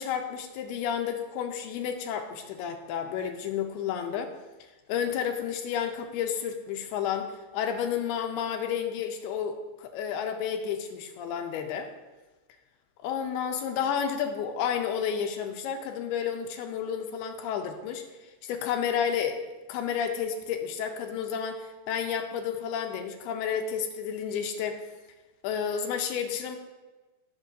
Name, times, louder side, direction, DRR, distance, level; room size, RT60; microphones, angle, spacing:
voice 1, 0.0-4.3 4.9-11.9 13.0-18.0 18.4-19.4 19.7-24.8 25.4-26.6, left 8 dB, 85° left, 5 dB, 2.5 m, -31 dB
17.0 x 6.4 x 2.6 m, 1.2 s
omnidirectional pair, 4.8 m